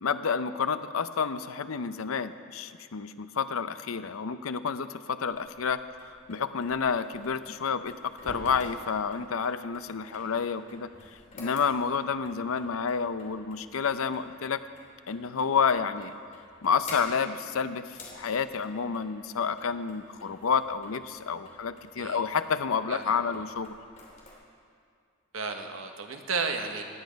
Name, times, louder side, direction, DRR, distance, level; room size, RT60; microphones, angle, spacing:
voice 1, 0.0-7.9 8.2-10.9 11.3-14.6 15.1-16.1 16.6-23.8, left 6 dB, 80° left, 12 dB, 0.6 m, -29 dB
sound 1, 5.2-24.3, left 2 dB, 35° left, 3.0 m, -50 dB
voice 2, 25.3-26.8, right 4 dB, 75° right, 4 dB, 1.2 m, -33 dB
17.5 x 10.0 x 5.2 m, 2.2 s
head